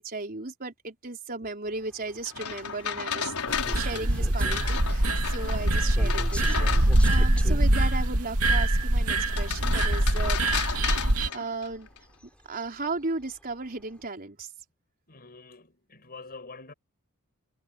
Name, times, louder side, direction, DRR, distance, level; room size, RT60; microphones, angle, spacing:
voice 1, 0.0-10.4 10.7-11.9 12.5-14.5, right 3 dB, 40° right, 4.3 m, -36 dB
sound 1, 1.6-14.1, equal, 5° left, 4.3 m, -45 dB
sound 2, 2.3-7.3 9.2-12.0, left 7 dB, 80° left, 5.3 m, -33 dB
sound 3, 3.5-11.3, right 1 dB, 90° right, 2.4 m, -24 dB
voice 2, 15.1-16.7, left 3 dB, 45° left, 6.5 m, -46 dB
head